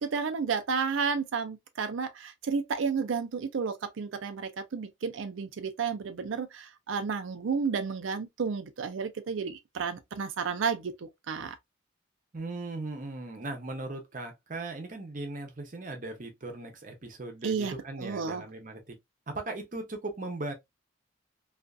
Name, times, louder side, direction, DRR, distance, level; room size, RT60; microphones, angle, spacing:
voice 1, 0.0-11.6 17.4-18.4, right 5 dB, 85° right, 0.5 m, -32 dB
voice 2, 12.3-19.0 19.3-20.5, right 2 dB, 40° right, 0.7 m, -38 dB
2.5 x 2.4 x 2.2 m
head